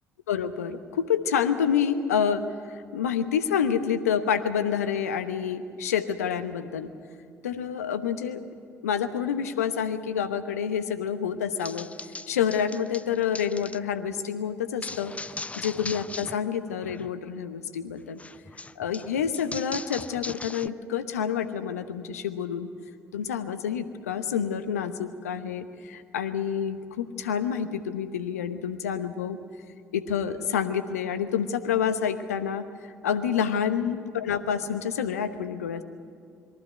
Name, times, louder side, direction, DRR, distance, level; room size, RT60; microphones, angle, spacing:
voice 1, 0.3-6.9 7.4-8.4 8.8-11.9 12.3-15.1 15.6-18.2 18.8-22.7 23.1-29.4 29.9-32.6 33.0-35.8, left 8 dB, 85° left, 10 dB, 1.0 m, -28 dB
sound 1, 11.6-13.8 14.8-16.4 16.7-17.1 18.2-20.7, left 3 dB, 15° left, 0.5 m, -39 dB
22.5 x 14.5 x 9.3 m, 2.3 s
hypercardioid pair, 50°, 8 cm